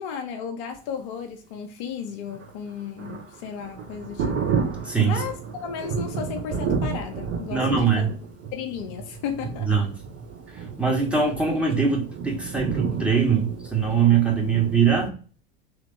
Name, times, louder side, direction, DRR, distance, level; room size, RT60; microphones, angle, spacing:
voice 1, 0.0-4.4 5.0-8.1 8.5-9.9, left 7 dB, 50° left, 0.6 m, -34 dB
Thunder, 2.3-15.1, right 6 dB, 50° right, 1.2 m, -31 dB
voice 2, 4.8-5.2 7.5-8.1 9.6-9.9 10.6-15.1, right 6 dB, 5° right, 1.1 m, -22 dB
3.0 x 2.6 x 2.5 m
figure-of-eight pair, 75°, 32 cm